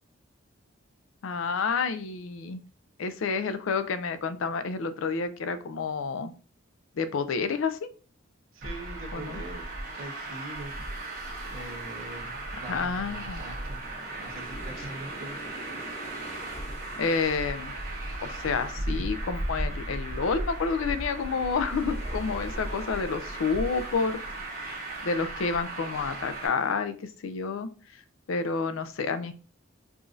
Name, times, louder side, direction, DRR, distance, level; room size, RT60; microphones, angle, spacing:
voice 1, 1.2-2.6 3.0-6.3 7.0-7.9 9.1-9.4 12.7-13.4 17.0-17.7 18.2-24.2 25.0-27.7 28.3-29.3, left 5 dB, 75° left, 11 dB, 0.4 m, -29 dB
voice 2, 8.5-9.7 9.9-10.9 11.5-13.8 14.2-15.5, right 2 dB, 80° right, 1 dB, 1.0 m, -42 dB
Traffic noise roadway noise, 8.6-26.5, right 1 dB, 45° right, 1.2 m, -36 dB
sound 1, 10.6-26.7, equal, 30° left, 0.6 m, -50 dB
4.8 x 2.5 x 2.5 m, 0.38 s
head